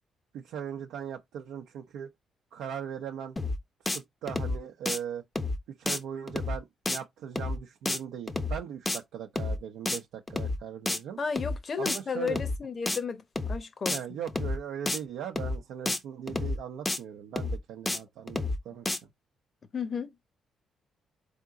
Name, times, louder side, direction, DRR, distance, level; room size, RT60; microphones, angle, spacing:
voice 1, 0.3-2.1 2.5-3.3 3.9-5.2 5.8-11.2 11.8-12.4 13.9-18.9, right 8 dB, 85° right, 0.6 m, -39 dB
sound 1, 3.4-3.6 3.9-4.0 4.3-4.6 4.8-5.0 5.4-5.6 5.9-6.0 6.3-6.6 6.9-7.0 7.4-7.6 7.8-8.0 8.3-8.6 8.9-9.0 9.4-9.6 9.9-10.0 10.3-10.6 10.9-11.0 11.4-11.6 11.8-12.0 12.3-12.6 12.9-13.0 13.4-13.6 13.8-14.0 14.3-14.6 14.9-15.0 15.4-15.6 15.9-16.0 16.3-16.6 16.8-17.0 17.4-17.6 17.9-18.0 18.3-18.6 18.8-19.0, left 2 dB, 15° left, 0.6 m, -30 dB
voice 2, 11.2-14.0 19.7-20.1, left 6 dB, 40° left, 0.9 m, -33 dB
3.9 x 3.6 x 3.6 m
cardioid pair, 90°, 0 cm